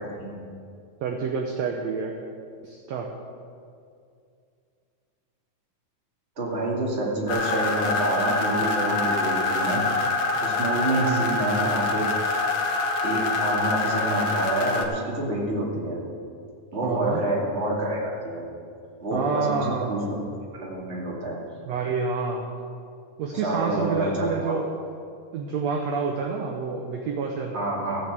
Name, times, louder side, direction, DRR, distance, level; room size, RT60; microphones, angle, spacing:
voice 1, 1.0-2.2 2.6-3.1 11.0-11.4 16.8-17.2 19.1-19.9 21.7-22.5 23.2-24.7 25.3-27.5, right 5 dB, 70° right, 2 dB, 1.7 m, -28 dB
voice 2, 6.4-9.9 10.4-12.1 13.0-16.0 16.7-18.4 19.0-20.1 20.5-21.4 23.3-24.6 27.5-28.0, right 1 dB, 20° right, -4 dB, 2.1 m, -28 dB
sound 1, 7.3-14.8, left 3 dB, 60° left, 1.7 m, -25 dB
15.5 x 5.9 x 8.1 m, 2.4 s
omnidirectional pair, 3.9 m